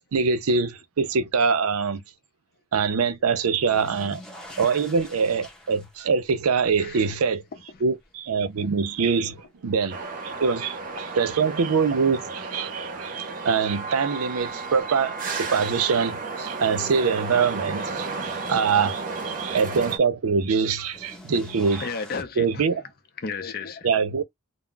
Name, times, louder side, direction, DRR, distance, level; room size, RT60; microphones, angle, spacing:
voice 1, 0.1-2.0 2.7-4.2 4.6-7.4 7.8-10.0 10.2-21.9 22.4-22.8 23.8-24.2, right 5 dB, 85° right, 0.5 m, -24 dB
sound 1, 3.4-10.4 10.8-11.5 13.1-13.2 14.8-14.9 20.6-22.2, left 1 dB, 5° left, 0.7 m, -46 dB
sound 2, 9.9-20.0, right 3 dB, 40° right, 0.6 m, -33 dB
voice 2, 21.8-22.7 23.2-23.9, left 4 dB, 45° left, 0.6 m, -33 dB
2.2 x 2.0 x 3.7 m
head